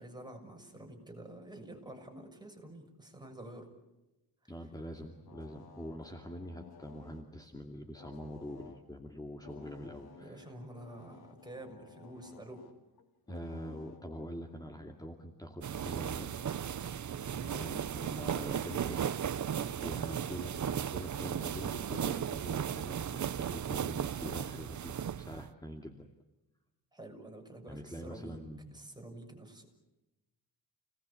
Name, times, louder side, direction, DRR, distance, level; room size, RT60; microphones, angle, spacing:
voice 1, 0.0-3.7 4.4-4.5 10.0-12.7 17.2-17.5 19.5-19.8 26.9-28.4 28.7-29.7, right 1 dB, 10° right, 2 dB, 6.7 m, -49 dB
voice 2, 4.5-10.5 13.3-16.6 17.5-19.1 19.4-26.1 27.7-28.8, equal, 10° left, 4 dB, 2.4 m, -45 dB
sound 1, 5.1-7.3 8.0-9.0 9.4-14.6, left 5 dB, 70° left, 3.0 m, -56 dB
sound 2, 15.6-25.5, right 8 dB, 50° right, 0.8 m, -36 dB
30.0 x 19.5 x 8.4 m, 1.0 s
cardioid pair, 100°, 38 cm